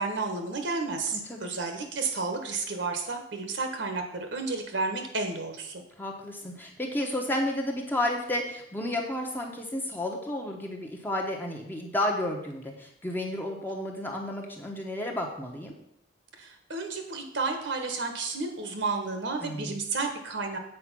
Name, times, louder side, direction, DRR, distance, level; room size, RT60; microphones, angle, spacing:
voice 1, 0.0-5.8 16.4-20.6, right 3 dB, 65° right, 5 dB, 1.3 m, -32 dB
voice 2, 1.1-1.5 6.0-15.7 19.4-19.7, left 1 dB, 10° left, 0 dB, 1.0 m, -32 dB
7.8 x 4.7 x 6.0 m, 0.74 s
head